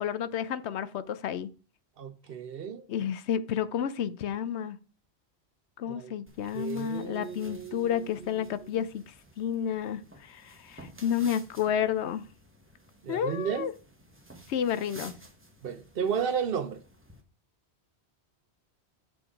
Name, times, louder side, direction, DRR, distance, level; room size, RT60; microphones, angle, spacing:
voice 1, 0.0-1.5 2.9-4.8 5.8-9.0 9.4-12.3 13.1-13.7 14.5-15.1, left 9 dB, 80° left, 0.9 m, -31 dB
voice 2, 2.0-2.9 5.9-6.1 6.5-8.5 13.0-13.7 15.6-16.8, right 7 dB, 60° right, 0.9 m, -33 dB
sound 1, 6.3-17.2, right 1 dB, 10° right, 1.2 m, -53 dB
7.6 x 4.7 x 4.9 m
omnidirectional pair, 1.1 m